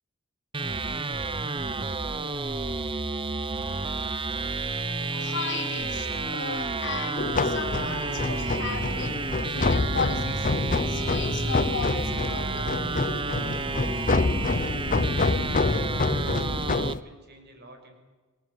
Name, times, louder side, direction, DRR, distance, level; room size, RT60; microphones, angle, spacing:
sound 1, 0.5-16.9, right 3 dB, 25° right, 1.0 m, -31 dB
sound 2, 5.1-10.0, right 3 dB, 85° right, 3.3 m, -46 dB
voice 1, 5.2-9.2 9.5-10.5 10.9-12.7, left 5 dB, 60° left, 6 dB, 4.0 m, -35 dB
sound 3, 7.2-17.0, left 3 dB, 40° left, 0.8 m, -27 dB
voice 2, 15.8-18.0, right 1 dB, 50° right, 5 dB, 5.7 m, -49 dB
27.0 x 20.0 x 9.4 m, 1.3 s
head